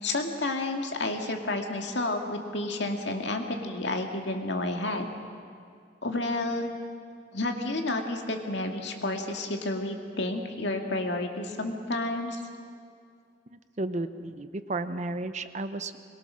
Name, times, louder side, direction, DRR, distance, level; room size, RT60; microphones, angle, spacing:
voice 1, 0.0-5.1 6.0-6.8 7.3-12.4, left 2 dB, 65° left, 3 dB, 2.1 m, -30 dB
voice 2, 13.5-16.0, right 2 dB, 40° right, 11 dB, 0.8 m, -33 dB
22.5 x 22.0 x 6.3 m, 2.3 s
head